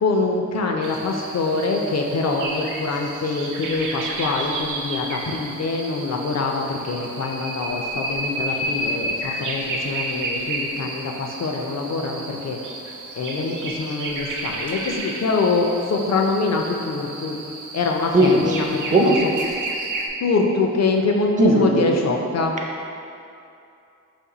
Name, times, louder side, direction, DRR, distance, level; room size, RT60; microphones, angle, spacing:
voice 1, 0.0-12.6 13.2-17.4 17.7-19.3 20.2-22.5, left 3 dB, 55° left, 2 dB, 0.5 m, -24 dB
sound 1, 0.8-20.1, right 2 dB, 80° right, 0.5 m, -31 dB
voice 2, 18.1-18.6 18.9-19.2 21.4-21.9, right 1 dB, 25° right, -1 dB, 0.5 m, -17 dB
4.2 x 2.6 x 3.8 m, 2.6 s
wide cardioid pair, 110°, 31 cm